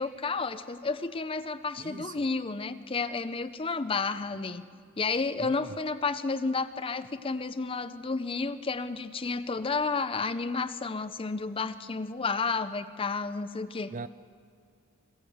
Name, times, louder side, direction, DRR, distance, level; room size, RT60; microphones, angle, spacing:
voice 1, 0.0-4.6 5.0-13.9, left 4 dB, 25° left, 0.6 m, -31 dB
voice 2, 1.8-2.1 5.4-5.7 13.9-14.1, right 4 dB, 40° right, 0.4 m, -40 dB
25.0 x 14.0 x 7.9 m
head